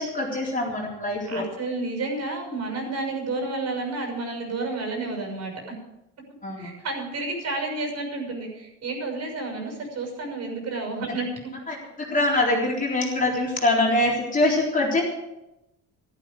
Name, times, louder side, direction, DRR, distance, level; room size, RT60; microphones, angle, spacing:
voice 1, 0.0-1.5 6.4-6.7 11.7-11.8 12.1-15.0, left 2 dB, 25° left, -2 dB, 3.9 m, -23 dB
voice 2, 1.3-5.5 6.6-11.3, right 3 dB, 55° right, 2 dB, 6.4 m, -30 dB
14.0 x 13.0 x 5.3 m, 0.92 s
cardioid pair, 130°, 32 cm